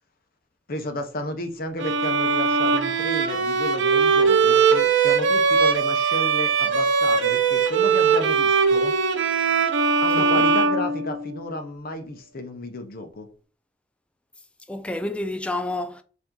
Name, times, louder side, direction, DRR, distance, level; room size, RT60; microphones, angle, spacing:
voice 1, 0.7-8.9 10.0-13.3, left 1 dB, 50° left, 0.8 m, -32 dB
Bowed string instrument, 1.8-11.5, right 5 dB, 70° right, 0.7 m, -20 dB
voice 2, 14.7-16.0, left 2 dB, 5° left, 0.3 m, -29 dB
5.3 x 2.7 x 3.7 m
head